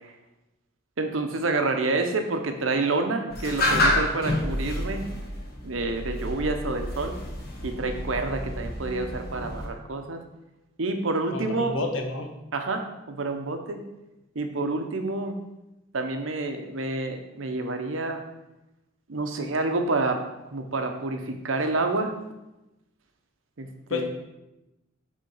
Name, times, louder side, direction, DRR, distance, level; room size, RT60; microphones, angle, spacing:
voice 1, 1.0-5.1 5.6-7.1 7.6-10.2 10.8-11.7 12.5-13.8 14.3-15.4 15.9-18.2 19.1-20.2 20.5-22.1 23.6-24.1, right 3 dB, 80° right, 5 dB, 0.8 m, -28 dB
sound 1, 3.3-9.7, left 1 dB, 50° left, 1.3 m, -29 dB
voice 2, 11.3-12.3 23.9-24.1, left 3 dB, 80° left, 3 dB, 1.0 m, -29 dB
6.5 x 3.6 x 5.5 m, 0.97 s
head